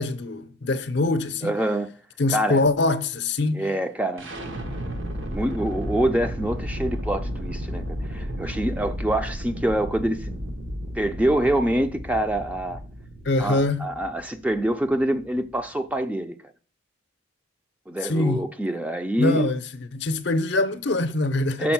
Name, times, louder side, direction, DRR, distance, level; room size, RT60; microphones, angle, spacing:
voice 1, 0.0-1.5 2.2-3.7 13.2-13.8 18.0-18.4 19.2-19.6 19.9-21.7, left 2 dB, 60° left, 0.6 m, -24 dB
voice 2, 1.4-1.9 2.3-2.6 3.5-4.3 5.2-10.5 11.0-12.8 13.4-16.4 17.9-19.5 21.6-21.7, right 1 dB, 5° right, 0.3 m, -25 dB
sound 1, 4.2-16.0, equal, 75° right, 1.1 m, -33 dB
6.2 x 4.1 x 5.9 m
head